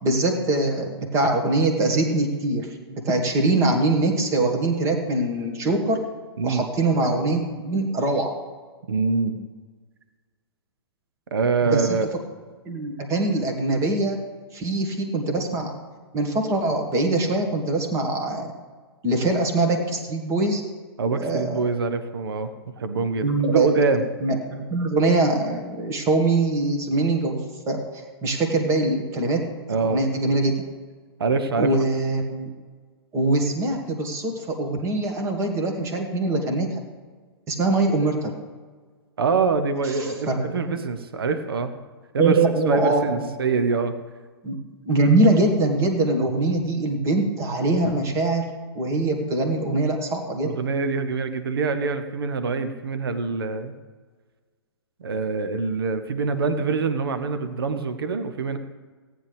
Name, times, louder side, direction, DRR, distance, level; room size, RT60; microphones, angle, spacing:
voice 1, 0.0-6.0 6.4-8.3 11.6-12.0 12.7-14.2 14.5-15.8 16.1-18.5 19.0-20.6 21.2-21.6 23.2-23.7 24.2-27.4 27.7-29.4 29.8-30.5 31.6-32.5 33.1-36.8 37.5-38.3 40.0-40.6 42.2-43.1 44.4-44.6 44.9-48.4 48.8-50.5, right 2 dB, 20° right, 2 dB, 1.9 m, -23 dB
voice 2, 6.4-6.7 8.9-9.4 11.3-12.1 21.0-22.5 22.8-24.0 29.7-30.0 31.2-31.7 39.2-41.7 42.1-42.4 42.6-43.9 50.4-53.7 55.0-58.6, right 4 dB, 60° right, 9 dB, 1.0 m, -24 dB
17.5 x 9.7 x 3.5 m, 1.5 s
figure-of-eight pair, 115°, 14 cm